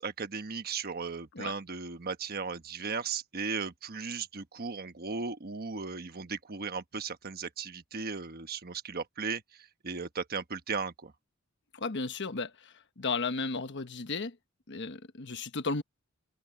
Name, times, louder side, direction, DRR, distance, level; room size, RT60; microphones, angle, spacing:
voice 1, 0.0-11.1, right 5 dB, 45° right, 1.2 m, -36 dB
voice 2, 11.7-14.4 14.7-15.8, left 4 dB, 55° left, 1.2 m, -34 dB
head